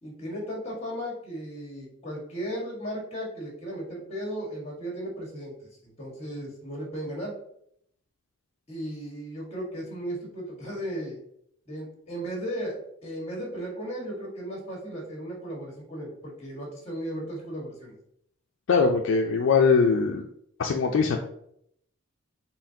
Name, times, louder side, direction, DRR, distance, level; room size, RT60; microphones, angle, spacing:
voice 1, 0.0-5.5 6.0-7.3 8.7-11.2 11.7-18.0, equal, 30° left, -2 dB, 1.6 m, -35 dB
voice 2, 18.7-20.3 20.6-21.2, left 5 dB, 65° left, 2 dB, 0.4 m, -21 dB
4.3 x 3.7 x 2.7 m, 0.70 s
head